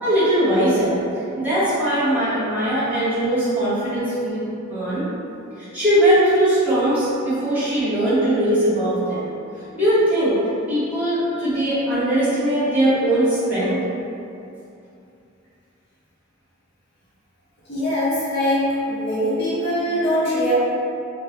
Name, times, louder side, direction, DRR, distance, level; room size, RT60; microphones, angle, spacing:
voice 1, 0.0-5.1 5.6-9.2 9.7-10.4 10.7-13.8, right 1 dB, 10° right, -14 dB, 1.0 m, -20 dB
voice 2, 17.7-20.5, equal, 55° left, -9 dB, 0.7 m, -22 dB
2.9 x 2.1 x 2.4 m, 2.6 s
head